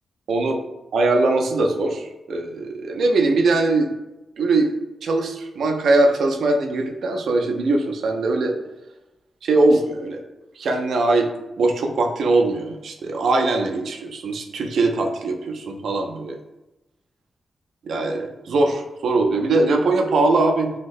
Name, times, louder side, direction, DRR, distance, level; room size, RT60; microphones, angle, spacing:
voice 1, 0.9-3.9 4.4-4.7 5.0-8.6 9.4-10.2 10.6-11.3 11.6-16.4 17.8-20.7, right 2 dB, 75° right, 3 dB, 0.4 m, -21 dB
2.8 x 2.0 x 4.0 m, 0.99 s
wide cardioid pair, 145°, 0 cm